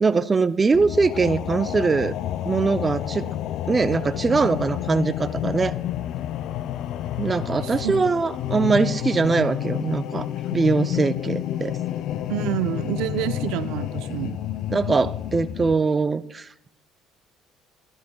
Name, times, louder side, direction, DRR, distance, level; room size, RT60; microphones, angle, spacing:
voice 1, 0.0-2.1 2.5-3.3 3.7-5.8 7.2-11.8 14.7-16.7, right 4 dB, 20° right, 12 dB, 0.3 m, -22 dB
sound 1, 0.7-15.7, left 12 dB, 65° left, 0.3 m, -29 dB
voice 2, 12.3-14.4, right 12 dB, 80° right, 12 dB, 0.5 m, -27 dB
12.0 x 11.5 x 2.2 m, 0.81 s
cardioid pair, 120°, 0 cm